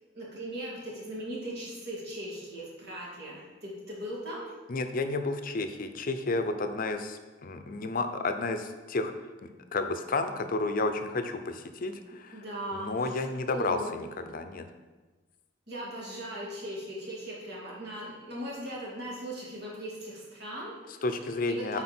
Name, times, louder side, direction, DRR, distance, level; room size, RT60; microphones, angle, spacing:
voice 1, 0.1-4.5 12.3-13.1 13.5-14.1 15.7-21.0 21.5-21.8, right 1 dB, 60° right, -5 dB, 2.3 m, -39 dB
voice 2, 4.7-9.1 9.4-12.4 12.7-14.6 21.0-21.8, left 3 dB, 50° left, 8 dB, 0.6 m, -31 dB
8.4 x 4.3 x 4.4 m, 1.2 s
head